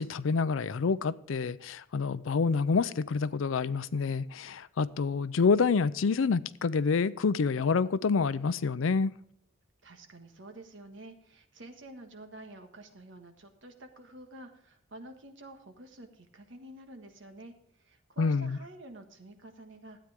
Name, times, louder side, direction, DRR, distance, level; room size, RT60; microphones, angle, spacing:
voice 1, 0.0-9.1 18.2-18.6, left 5 dB, 90° left, 0.5 m, -27 dB
voice 2, 9.8-20.0, right 1 dB, 70° right, 1.5 m, -49 dB
12.5 x 8.9 x 3.6 m
head